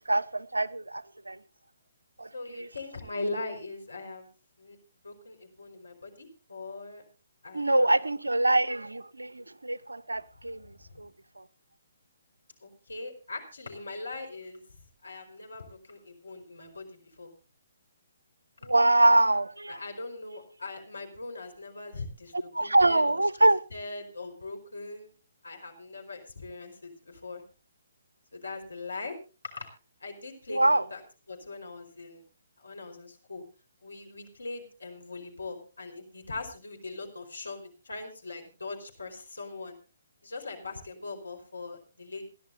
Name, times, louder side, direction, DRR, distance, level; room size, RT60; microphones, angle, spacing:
voice 1, 0.1-1.4 2.2-2.7 7.5-10.7 11.0-11.1 18.7-19.8 22.3-23.6 30.5-30.8, right 1 dB, 75° right, 0.8 m, -24 dB
voice 2, 2.3-4.3 4.6-4.8 5.0-7.0 7.4-7.9 10.9-11.1 12.6-14.6 15.0-17.3 19.7-23.2 23.7-25.1 25.4-27.4 28.3-29.2 29.4-29.7 30.0-31.0 31.3-32.2 32.6-33.4 33.8-39.8 40.2-42.3, left 3 dB, 70° left, 4.5 m, -40 dB
28.0 x 11.0 x 2.7 m
figure-of-eight pair, 135°, 0 cm